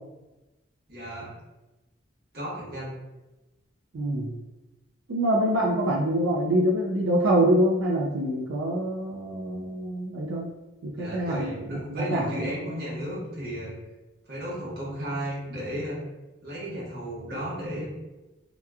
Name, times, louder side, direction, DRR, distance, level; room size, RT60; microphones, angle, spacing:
voice 1, 0.9-1.3 2.3-2.9 10.9-13.7 14.3-16.0 16.4-17.9, equal, 55° right, -7 dB, 1.1 m, -34 dB
voice 2, 3.9-4.3 5.1-10.5 10.8-11.5 11.9-12.8, right 1 dB, 90° right, -4 dB, 0.4 m, -25 dB
2.9 x 2.3 x 2.3 m, 1.1 s
head